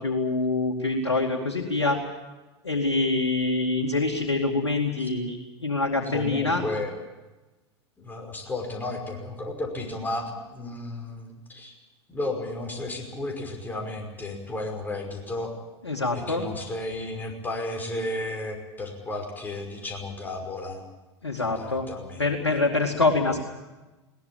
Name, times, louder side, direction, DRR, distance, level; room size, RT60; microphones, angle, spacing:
voice 1, 0.0-2.0 2.6-5.4 5.6-6.6 15.8-16.5 21.2-21.9 22.2-23.4, left 3 dB, 85° left, 0 dB, 2.5 m, -25 dB
voice 2, 6.1-6.9 8.0-11.7 12.1-15.5 16.1-20.8 21.4-22.2, left 2 dB, 15° left, 2 dB, 5.5 m, -33 dB
21.5 x 19.0 x 8.8 m, 1.1 s
figure-of-eight pair, 95°, 14 cm